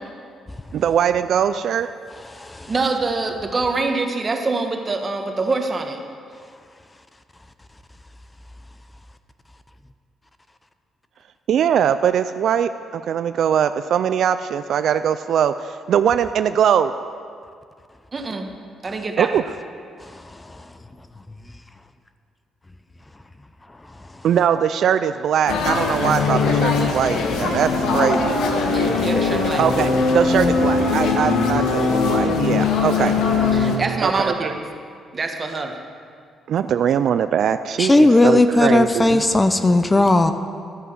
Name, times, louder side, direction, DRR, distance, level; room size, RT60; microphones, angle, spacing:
voice 1, 0.7-1.9 11.5-16.9 19.2-19.4 24.2-28.4 29.6-33.1 34.0-34.5 36.5-39.2, right 8 dB, 70° right, 11 dB, 0.3 m, -21 dB
voice 2, 2.7-6.0 18.1-18.5 18.8-19.4 28.6-29.7 33.0-33.2 33.5-34.6 35.1-35.8, right 3 dB, 35° right, 4 dB, 1.4 m, -25 dB
sound 1, 25.5-33.8, left 4 dB, 85° left, 1.4 m, -20 dB
voice 3, 37.8-40.3, left 2 dB, 15° left, 9 dB, 0.7 m, -15 dB
12.0 x 8.2 x 7.4 m, 2.2 s
cardioid pair, 90°, 0 cm